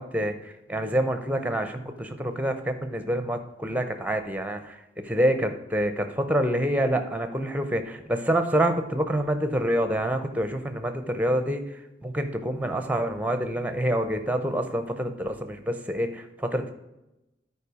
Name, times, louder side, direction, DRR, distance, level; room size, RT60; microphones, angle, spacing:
voice 1, 0.0-4.8 5.0-16.7, right 1 dB, 10° right, 8 dB, 0.7 m, -27 dB
9.9 x 4.7 x 4.9 m, 0.95 s
head